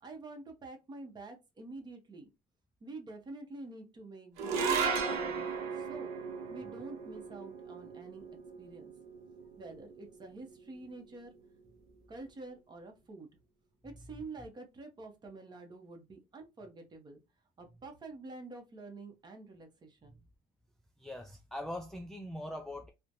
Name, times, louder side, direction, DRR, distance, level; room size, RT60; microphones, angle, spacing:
voice 1, 0.0-2.3 2.8-6.1 6.5-8.2 8.6-8.9 9.6-11.3 12.1-13.3 13.8-17.2 17.6-20.2, right 2 dB, 30° right, 0.9 m, -48 dB
sound 1, 4.4-10.8, right 5 dB, 80° right, 0.8 m, -36 dB
voice 2, 13.8-14.2 20.1-20.2 21.0-22.9, left 1 dB, 5° left, 0.3 m, -42 dB
3.1 x 2.1 x 2.5 m
cardioid pair, 115°, 16 cm